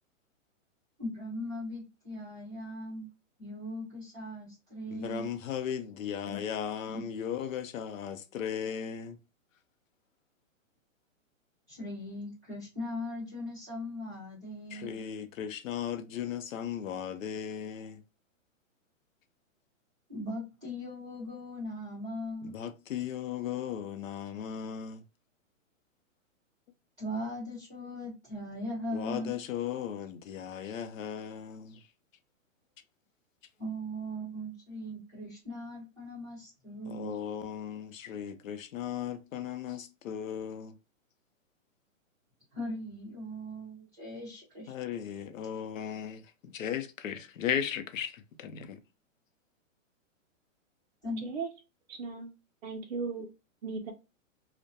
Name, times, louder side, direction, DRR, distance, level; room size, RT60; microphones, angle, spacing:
voice 1, 1.0-3.1 3.4-5.3 6.9-7.0 11.7-15.0 20.1-22.5 27.0-29.3 33.6-37.2 42.5-44.7 51.0-51.3, equal, 10° right, 0.7 m, -39 dB
voice 2, 4.9-9.2 14.7-18.0 22.4-25.0 28.9-31.8 36.9-40.8 44.7-48.8, left 9 dB, 80° left, 0.6 m, -36 dB
voice 3, 51.9-52.3 52.6-53.3 53.6-53.9, right 4 dB, 55° right, 0.4 m, -36 dB
2.2 x 2.1 x 2.6 m
hypercardioid pair, 180°, 39 cm